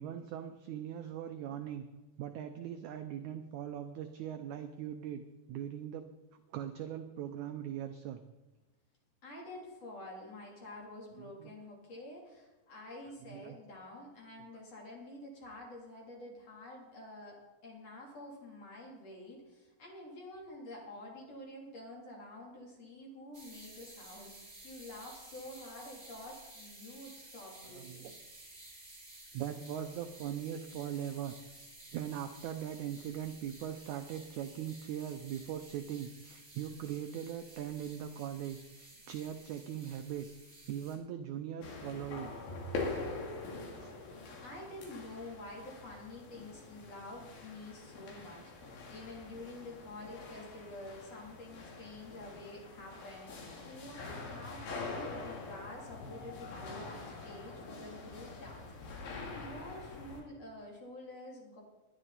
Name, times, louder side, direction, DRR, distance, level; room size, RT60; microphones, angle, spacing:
voice 1, 0.0-1.8 2.2-5.2 5.5-6.1 6.5-8.2 11.2-11.5 13.3-13.6 27.6-28.1 29.3-31.4 31.9-40.3 40.7-42.3 43.6-44.0, right 10 dB, 85° right, 7 dB, 1.7 m, -40 dB
voice 2, 9.2-28.1 44.4-61.6, left 1 dB, 45° left, -2 dB, 4.3 m, -48 dB
sound 1, 23.3-41.0, right 2 dB, 15° right, 3.4 m, -54 dB
sound 2, 41.6-60.2, left 3 dB, 75° left, 4.2 m, -44 dB
21.0 x 11.0 x 4.2 m, 1.1 s
omnidirectional pair, 4.3 m